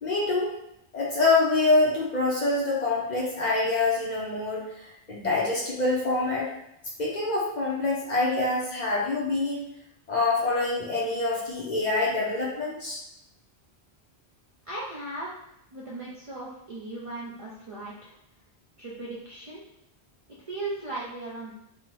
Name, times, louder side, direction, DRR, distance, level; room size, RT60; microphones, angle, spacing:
voice 1, 0.0-0.5 0.9-6.5 7.0-9.6 10.1-13.0, left 3 dB, 50° left, -4 dB, 0.6 m, -25 dB
voice 2, 14.6-15.3 15.7-18.1 18.8-19.6 20.5-21.5, right 2 dB, 50° right, -6 dB, 0.4 m, -37 dB
2.7 x 2.0 x 3.0 m, 0.82 s
omnidirectional pair, 1.1 m